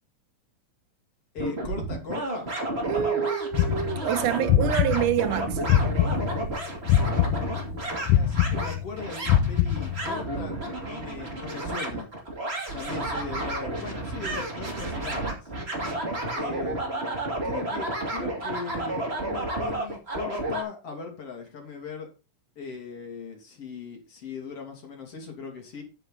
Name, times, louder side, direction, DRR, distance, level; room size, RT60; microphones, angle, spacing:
voice 1, 1.3-2.5 8.0-12.1 12.7-15.5 16.3-22.1 22.6-25.8, left 5 dB, 45° left, 3.5 m, -39 dB
sound 1, 1.4-20.6, right 2 dB, 20° right, 2.6 m, -31 dB
voice 2, 2.8-6.3, right 11 dB, 75° right, 2.2 m, -27 dB
sound 2, 3.5-6.5 6.9-10.2, left 10 dB, 75° left, 2.0 m, -23 dB
9.1 x 8.8 x 4.0 m
omnidirectional pair, 3.8 m